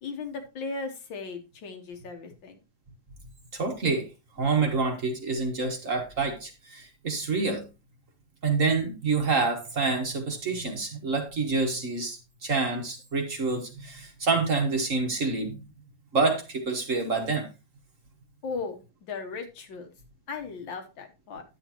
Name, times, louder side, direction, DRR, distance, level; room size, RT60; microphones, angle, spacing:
voice 1, 0.0-2.6 18.4-19.9 20.3-21.4, left 4 dB, 70° left, 5 dB, 1.8 m, -37 dB
voice 2, 3.5-4.1 4.4-7.6 8.4-15.6 16.1-17.5, right 4 dB, 45° right, 3 dB, 1.4 m, -27 dB
10.0 x 7.8 x 2.9 m, 0.28 s
omnidirectional pair, 2.2 m